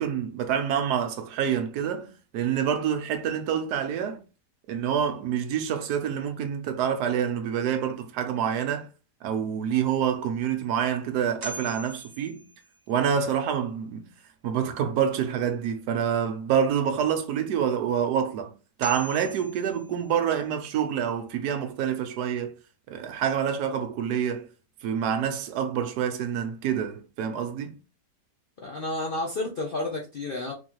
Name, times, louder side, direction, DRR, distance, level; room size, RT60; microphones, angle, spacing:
voice 1, 0.0-4.2 4.7-8.9 9.2-12.5 12.9-14.1 14.4-18.5 18.8-22.5 22.9-24.5 24.8-27.8, right 8 dB, 70° right, 1.2 m, -27 dB
sound 1, 10.6-10.7 11.4-13.0 18.1-18.2 18.8-20.5, right 2 dB, 45° right, 0.8 m, -42 dB
voice 2, 28.6-30.5, left 2 dB, 80° left, 0.4 m, -31 dB
3.8 x 3.0 x 3.0 m
omnidirectional pair, 1.9 m